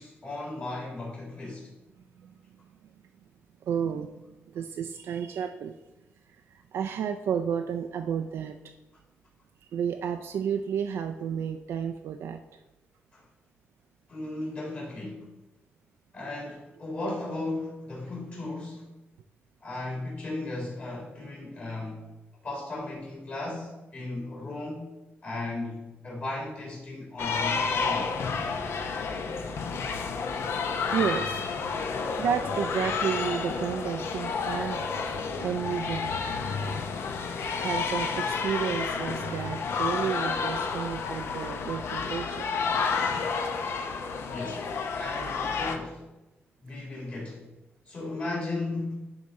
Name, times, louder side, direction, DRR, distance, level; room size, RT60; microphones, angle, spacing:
voice 1, 0.0-1.7 13.1-13.3 14.1-15.3 16.1-18.9 19.6-22.1 22.4-25.0 25.2-28.1 44.2-46.0 46.6-47.5 47.9-49.0, left 2 dB, 40° left, -4 dB, 2.5 m, -36 dB
voice 2, 3.6-5.8 6.3-8.7 9.6-12.4 30.9-31.4 32.2-35.2 35.4-36.1 37.6-42.6, right 7 dB, 90° right, 6 dB, 0.4 m, -32 dB
sound 1, 27.2-45.8, left 5 dB, 75° left, 0.8 m, -30 dB
11.0 x 3.7 x 4.1 m, 1.0 s
wide cardioid pair, 145°, 4 cm